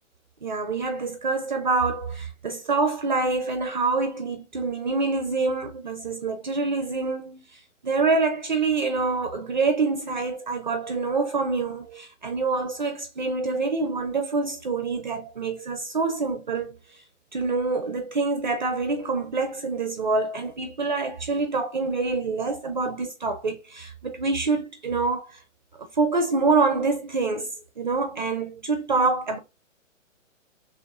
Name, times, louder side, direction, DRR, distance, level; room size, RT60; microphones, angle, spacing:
voice 1, 0.4-7.5 7.8-16.8 17.3-25.4 25.8-29.4, right 3 dB, 35° right, 0.5 m, -26 dB
4.7 x 3.2 x 2.4 m
hypercardioid pair, 170°, 39 cm